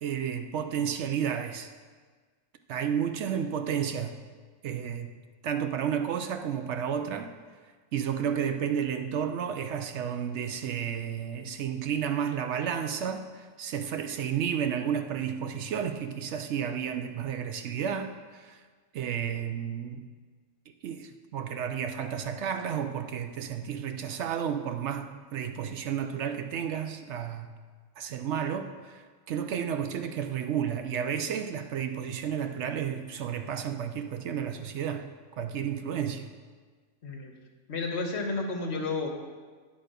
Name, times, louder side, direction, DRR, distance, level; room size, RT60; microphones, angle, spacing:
voice 1, 0.0-1.7 2.7-4.2 4.6-5.1 5.4-7.3 7.9-18.6 18.9-20.0 20.8-27.5 28.0-35.0 35.4-36.3, right 8 dB, 70° right, 7 dB, 0.8 m, -32 dB
voice 2, 37.0-37.3 37.7-39.1, left 3 dB, 60° left, 2 dB, 1.3 m, -31 dB
9.9 x 4.1 x 6.6 m, 1.5 s
omnidirectional pair, 1.3 m